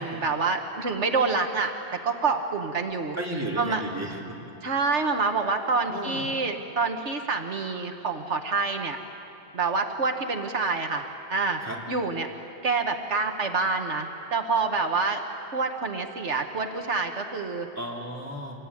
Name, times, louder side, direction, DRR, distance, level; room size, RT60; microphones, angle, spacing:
voice 1, 0.0-3.2 3.6-3.8 4.6-9.0 9.5-11.1 11.3-11.6 11.9-12.3 12.6-15.2 15.5-17.7, right 4 dB, 85° right, 5 dB, 1.7 m, -27 dB
voice 2, 3.2-4.4 5.9-6.2 11.6-11.8 17.8-18.6, right 1 dB, 15° right, -2 dB, 3.5 m, -33 dB
27.0 x 21.0 x 10.0 m, 2.8 s
omnidirectional pair, 1.2 m